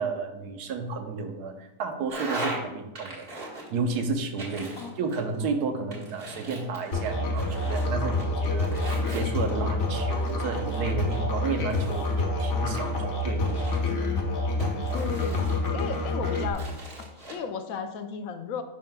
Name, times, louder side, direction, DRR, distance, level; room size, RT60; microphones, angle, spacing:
voice 1, 0.0-3.3 3.7-14.1, right 4 dB, 80° right, 5 dB, 1.3 m, -32 dB
sound 1, 2.1-2.6 2.9-3.9 4.4-5.5 5.9-7.9 8.2-9.7 10.2-12.2 12.7-14.0 14.6-15.9 16.3-17.3, right 2 dB, 40° right, 1.6 m, -39 dB
Musical instrument, 6.9-16.5, left 2 dB, 50° left, 1.4 m, -27 dB
voice 2, 14.9-15.4 15.7-16.7 17.3-18.6, left 6 dB, 70° left, 8 dB, 0.9 m, -34 dB
10.0 x 5.4 x 2.2 m, 0.97 s
omnidirectional pair, 1.7 m